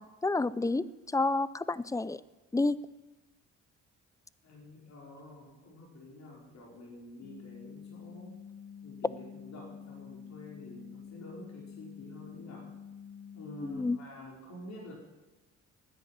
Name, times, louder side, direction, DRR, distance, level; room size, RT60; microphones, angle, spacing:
voice 1, 0.0-2.2 2.5-2.8 13.6-14.0, left 3 dB, 10° left, 18 dB, 0.5 m, -30 dB
voice 2, 4.4-8.3 8.8-12.7 13.3-14.9, left 1 dB, 60° left, -3 dB, 5.1 m, -48 dB
sound 1, 7.2-14.0, left 7 dB, 85° left, 1.8 m, -48 dB
13.0 x 10.0 x 8.8 m, 1.1 s
cardioid pair, 90°, 30 cm